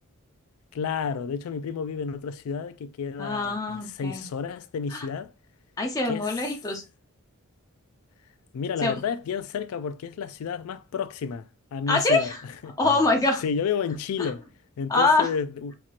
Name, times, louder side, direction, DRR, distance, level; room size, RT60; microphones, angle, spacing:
voice 1, 0.7-5.3 6.1-6.3 8.5-13.0 13.4-14.4 14.8-15.7, left 6 dB, 90° left, 0.3 m, -31 dB
voice 2, 3.2-4.2 4.9-5.1 5.8-6.8 8.8-9.0 11.9-12.3 12.8-13.4 14.2-14.3 14.9-15.3, left 3 dB, 15° left, 0.8 m, -24 dB
4.3 x 2.9 x 2.4 m
head